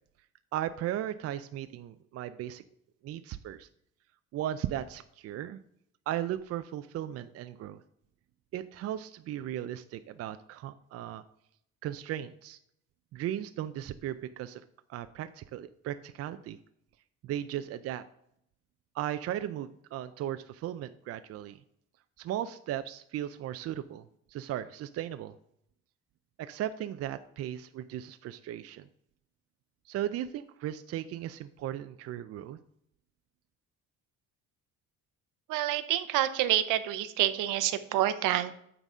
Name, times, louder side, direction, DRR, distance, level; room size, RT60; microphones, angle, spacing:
voice 1, 0.5-2.6 3.0-3.7 4.3-5.6 6.1-7.8 8.5-11.2 11.8-12.6 13.1-14.6 14.9-16.6 17.2-18.0 18.9-21.6 22.2-25.3 26.4-28.8 29.9-32.6, right 11 dB, 50° right, 11 dB, 0.4 m, -36 dB
voice 2, 35.5-38.5, right 13 dB, 80° right, 12 dB, 0.8 m, -28 dB
9.0 x 4.0 x 6.1 m, 0.73 s
cardioid pair, 140°, 31 cm